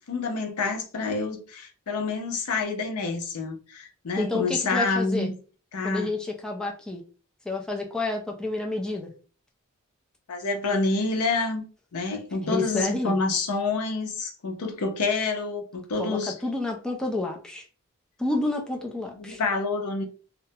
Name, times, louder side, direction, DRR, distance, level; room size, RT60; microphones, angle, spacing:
voice 1, 0.1-5.3 5.7-6.1 10.3-11.7 11.9-16.3 19.2-20.0, left 3 dB, 85° left, 0.5 m, -28 dB
voice 2, 4.2-5.3 5.8-7.0 7.5-9.1 12.4-13.2 16.0-17.6 18.2-19.4, left 2 dB, 5° left, 0.3 m, -29 dB
2.3 x 2.0 x 2.7 m
head